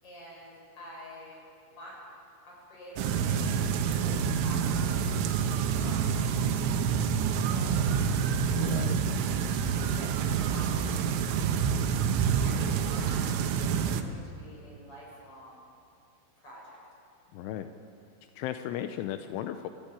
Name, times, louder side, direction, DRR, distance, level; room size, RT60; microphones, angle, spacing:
voice 1, 0.0-1.4 1.7-2.0 2.5-5.0 5.7-6.2 7.5-8.1 9.8-11.6 12.4-15.6 16.4-16.8, equal, 30° left, -3 dB, 7.5 m, -48 dB
sound 1, 3.0-14.0, right 7 dB, 85° right, 3.6 m, -27 dB
voice 2, 8.5-8.9 17.3-17.7 18.4-19.7, left 12 dB, 85° left, 8 dB, 3.2 m, -35 dB
26.0 x 15.5 x 8.9 m, 2.6 s
omnidirectional pair, 5.5 m